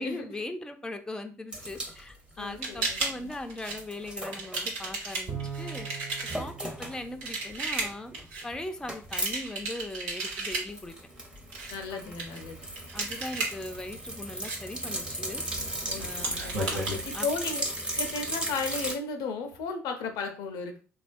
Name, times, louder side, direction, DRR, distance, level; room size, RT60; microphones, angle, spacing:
voice 1, 0.0-5.9 6.4-8.1 8.4-11.0 11.9-12.2 12.9-15.4 16.0-16.4 16.7-17.3, left 1 dB, 10° left, 6 dB, 0.4 m, -39 dB
sound 1, 1.5-3.4 3.7-5.5 5.8-5.9 6.2-7.0 7.4-9.4 9.6-9.7 10.0-18.9, right 1 dB, 10° right, 0.8 m, -37 dB
voice 2, 2.4-3.4 11.7-12.6 15.9-16.5 17.0-17.6 17.9-20.8, left 4 dB, 65° left, 6 dB, 0.5 m, -35 dB
sound 2, 2.6-3.2 3.5-3.8 4.3-6.4 7.2-8.4 9.1-10.7 11.4-11.7 12.2-13.5 14.4-14.6 15.5-17.2, right 2 dB, 75° right, 0.8 m, -33 dB
Bowed string instrument, 5.3-7.9, right 7 dB, 50° right, 1.0 m, -41 dB
3.2 x 2.3 x 2.5 m, 0.38 s
hypercardioid pair, 50°, 8 cm